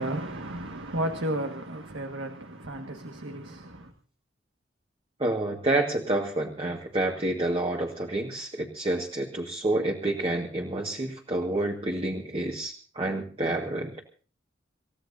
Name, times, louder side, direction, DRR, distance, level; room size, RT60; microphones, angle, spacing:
voice 1, 0.0-3.9, right 1 dB, 85° right, 1.6 m, -33 dB
voice 2, 5.2-13.9, right 2 dB, 30° right, 1.7 m, -28 dB
28.0 x 15.5 x 2.7 m
head